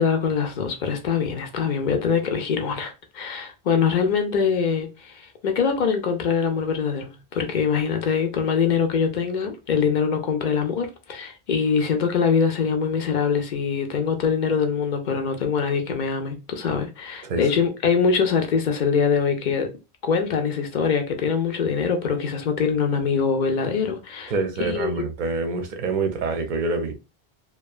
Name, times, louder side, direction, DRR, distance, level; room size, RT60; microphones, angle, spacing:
voice 1, 0.0-19.7 20.0-25.1, left 6 dB, 55° left, 0.6 m, -23 dB
voice 2, 24.3-26.9, right 3 dB, 55° right, 0.7 m, -26 dB
2.7 x 2.3 x 2.3 m
omnidirectional pair, 1.0 m